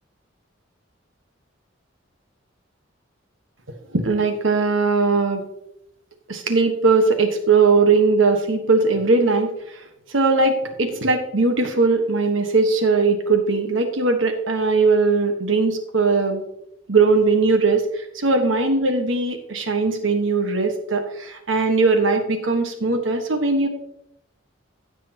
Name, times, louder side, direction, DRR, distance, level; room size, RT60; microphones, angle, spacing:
voice 1, 3.9-5.4 6.3-16.4 16.9-23.7, right 3 dB, 80° right, 6 dB, 1.4 m, -19 dB
15.5 x 6.3 x 2.9 m, 0.79 s
head